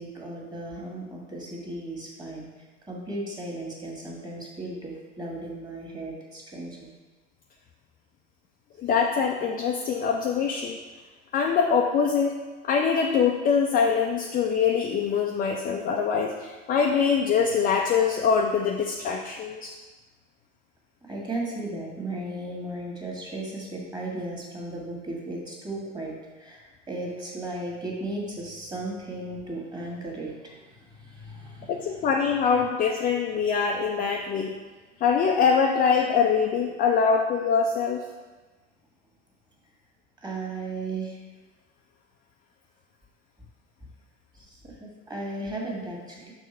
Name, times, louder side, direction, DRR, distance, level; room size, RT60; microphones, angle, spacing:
voice 1, 0.0-2.5 2.9-6.9 21.0-30.6 30.9-32.1 40.2-41.2 44.4-46.3, right 2 dB, 10° right, -2 dB, 1.8 m, -36 dB
voice 2, 8.8-10.8 11.3-12.4 12.6-19.7 31.7-34.5 35.0-38.0, left 6 dB, 25° left, 1 dB, 0.5 m, -23 dB
6.4 x 3.5 x 5.4 m, 1.3 s
figure-of-eight pair, 75°, 36 cm